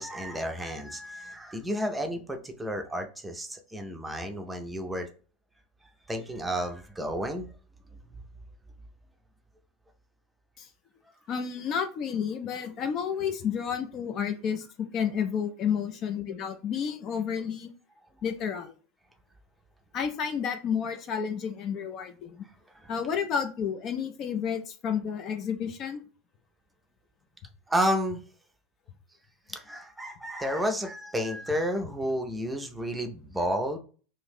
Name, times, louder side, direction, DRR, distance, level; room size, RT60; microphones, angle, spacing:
voice 1, 0.0-5.1 6.1-7.5 22.8-22.9 27.7-28.2 29.5-33.8, equal, 10° right, 5 dB, 0.6 m, -31 dB
voice 2, 11.3-17.7 18.2-18.7 19.9-22.4 22.9-26.0, left 7 dB, 40° left, 6 dB, 0.4 m, -31 dB
2.6 x 2.5 x 3.4 m, 0.39 s
figure-of-eight pair, 80°, 0 cm